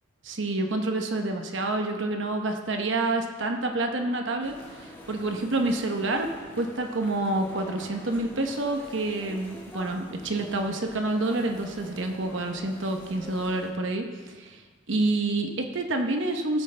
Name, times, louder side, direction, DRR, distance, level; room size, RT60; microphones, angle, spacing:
voice 1, 0.2-4.5 5.1-6.3 6.6-14.1 14.3-14.6 14.9-16.6, right 2 dB, 65° right, 4 dB, 1.0 m, -28 dB
sound 1, 4.4-13.7, equal, 10° left, 1.7 m, -46 dB
16.5 x 8.7 x 3.4 m, 1.4 s
head